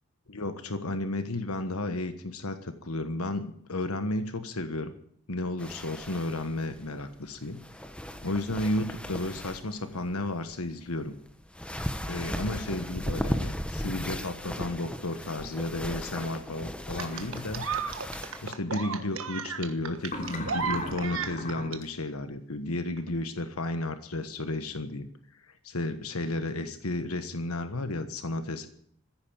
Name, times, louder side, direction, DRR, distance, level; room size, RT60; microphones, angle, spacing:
voice 1, 0.3-5.0 5.3-7.6 8.2-11.1 12.1-17.6 18.4-28.7, left 2 dB, 80° left, 9 dB, 1.4 m, -33 dB
sound 1, 5.6-18.5, equal, 5° left, 1.0 m, -37 dB
sound 2, 16.9-17.4 20.0-21.8, left 1 dB, 40° left, 3.2 m, -38 dB
sound 3, 17.0-21.8 23.0-23.1, right 6 dB, 60° right, 1.4 m, -34 dB
15.0 x 10.5 x 8.7 m, 0.63 s
head